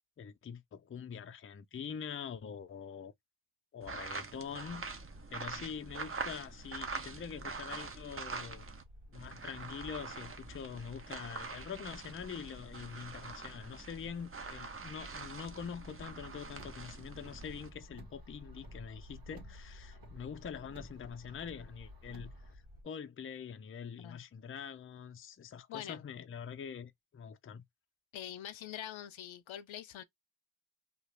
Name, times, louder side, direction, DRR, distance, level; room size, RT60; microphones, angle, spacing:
voice 1, 0.2-3.1 3.7-4.8 5.3-8.7 9.1-27.6, left 7 dB, 30° left, 0.4 m, -45 dB
sound 1, 3.8-8.8 9.1-17.7, right 4 dB, 30° right, 0.6 m, -45 dB
sound 2, 4.6-22.8, equal, 80° right, 1.8 m, -55 dB
Car, 16.2-22.5, equal, 45° right, 1.5 m, -55 dB
voice 2, 25.7-26.0 28.1-30.0, left 11 dB, 75° left, 0.6 m, -44 dB
2.9 x 2.4 x 3.1 m
cardioid pair, 90°, 47 cm